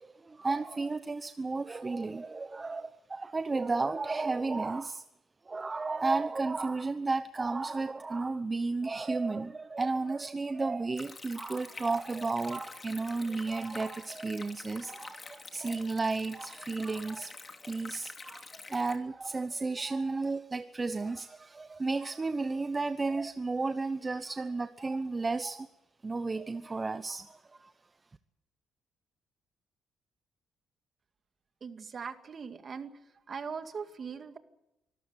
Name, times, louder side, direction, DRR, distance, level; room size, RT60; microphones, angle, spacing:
voice 1, 0.0-5.0 5.5-17.3 17.6-25.7 26.0-27.7, right 3 dB, 25° right, 0.9 m, -33 dB
Stream, 11.0-19.0, left 3 dB, 30° left, 2.9 m, -47 dB
voice 2, 31.6-32.9 33.3-34.4, right 6 dB, 45° right, 2.1 m, -40 dB
25.0 x 14.0 x 9.5 m
cardioid pair, 90°, 0 cm